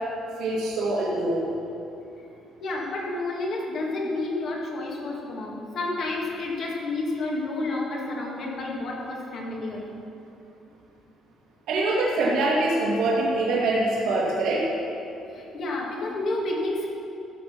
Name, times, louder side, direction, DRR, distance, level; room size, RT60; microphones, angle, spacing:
voice 1, 0.4-1.5 11.7-14.7, right 2 dB, 75° right, -4 dB, 2.2 m, -24 dB
voice 2, 2.6-9.9 15.3-16.9, left 2 dB, 55° left, -2 dB, 2.3 m, -30 dB
14.0 x 6.7 x 6.0 m, 2.9 s
cardioid pair, 130°, 0 cm